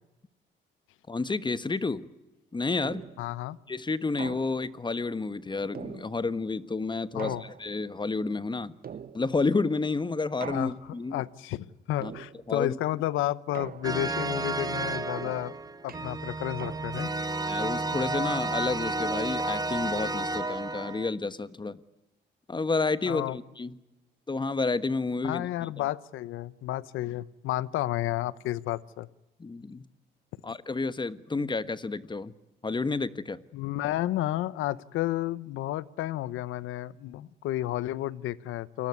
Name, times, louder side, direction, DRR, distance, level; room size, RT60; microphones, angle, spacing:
voice 1, 1.1-2.1 2.5-3.0 3.7-8.8 9.1-11.2 12.0-12.1 12.5-12.8 17.4-21.8 22.5-23.8 24.3-25.8 29.4-29.9 30.4-32.3 32.6-33.4, left 3 dB, 25° left, 14 dB, 1.3 m, -30 dB
sound 1, 2.8-3.4 4.2-4.9 5.7-6.5 7.2-8.0 8.8-9.6 10.4-11.1 12.0-12.7 13.5-14.3 15.2-17.2, right 7 dB, 50° right, 1.4 m, -43 dB
voice 2, 3.2-3.6 7.1-7.4 10.5-10.7 11.1-15.6 15.8-17.1 23.1-23.4 25.2-29.1 33.5-38.9, left 14 dB, 90° left, 19 dB, 0.9 m, -31 dB
sound 2, 13.8-21.1, right 2 dB, 20° right, 1.8 m, -31 dB
29.0 x 19.5 x 9.6 m, 1.0 s
cardioid pair, 90°, 20 cm